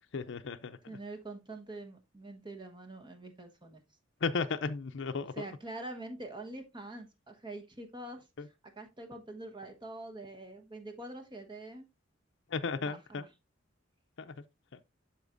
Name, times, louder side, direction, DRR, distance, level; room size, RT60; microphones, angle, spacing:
voice 1, 0.0-1.0 4.2-5.5 8.4-8.5 12.5-13.2 14.2-14.8, left 4 dB, 65° left, 0.5 m, -36 dB
voice 2, 0.9-3.8 5.4-8.3 8.8-11.9 12.9-13.0, right 2 dB, 25° right, 1.3 m, -45 dB
12.0 x 4.3 x 2.6 m
head